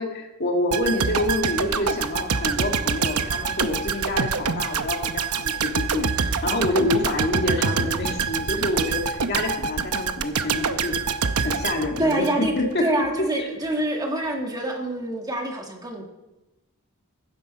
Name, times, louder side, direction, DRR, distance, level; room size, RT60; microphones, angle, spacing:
voice 1, 0.0-10.9 11.4-12.9 13.4-13.5, left 2 dB, 50° left, 2 dB, 2.0 m, -27 dB
sound 1, 0.7-12.7 13.0-13.2, right 5 dB, 85° right, 0.8 m, -26 dB
voice 2, 12.0-12.5 12.8-16.0, right 1 dB, 15° right, 2 dB, 1.7 m, -26 dB
15.5 x 12.5 x 4.2 m, 1.0 s
head